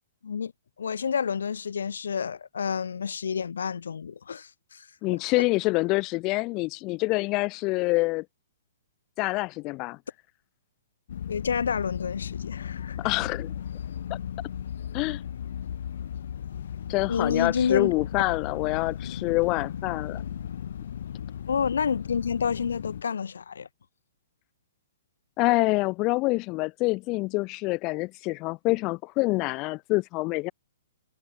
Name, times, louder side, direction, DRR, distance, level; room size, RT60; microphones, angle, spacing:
voice 1, 0.8-4.8 11.3-13.0 17.1-18.0 21.5-23.7, left 6 dB, 90° left, 3.8 m, -29 dB
voice 2, 5.0-8.3 9.2-10.0 13.0-13.5 14.9-15.2 16.9-20.2 25.4-30.5, left 23 dB, 20° left, 1.8 m, -26 dB
sound 1, 11.1-23.0, left 9 dB, 50° left, 1.4 m, -36 dB
hypercardioid pair, 180°, 0 cm